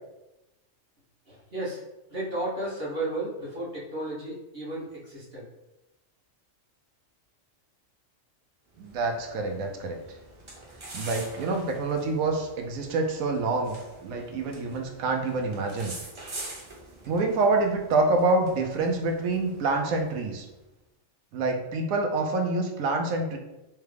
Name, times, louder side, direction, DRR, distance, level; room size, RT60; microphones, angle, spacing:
voice 1, 1.3-1.8 2.1-5.4, right 1 dB, 50° right, -7 dB, 1.6 m, -33 dB
sound 1, 8.7-20.5, right 2 dB, 30° right, 0.5 m, -45 dB
voice 2, 8.8-10.0 10.9-13.8 14.0-15.9 17.1-20.4 21.3-23.4, right 3 dB, 90° right, 2 dB, 1.0 m, -26 dB
3.5 x 3.4 x 3.3 m, 0.98 s
omnidirectional pair, 1.4 m